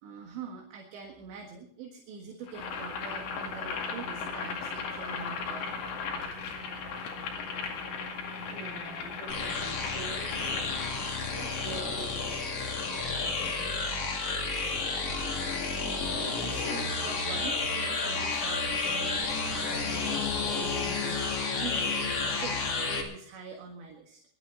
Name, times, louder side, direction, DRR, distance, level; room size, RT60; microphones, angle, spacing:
voice 1, 0.0-5.8 16.0-24.2, right 5 dB, 65° right, 1 dB, 3.7 m, -44 dB
Boiling, 2.5-11.9, left 5 dB, 65° left, 4.3 m, -37 dB
voice 2, 8.5-10.8 11.3-12.4 13.0-13.8, right 3 dB, 25° right, -3 dB, 8.6 m, -45 dB
sound 1, 9.3-23.0, left 4 dB, 40° left, 2.7 m, -31 dB
21.5 x 12.0 x 4.0 m, 0.64 s
omnidirectional pair, 5.8 m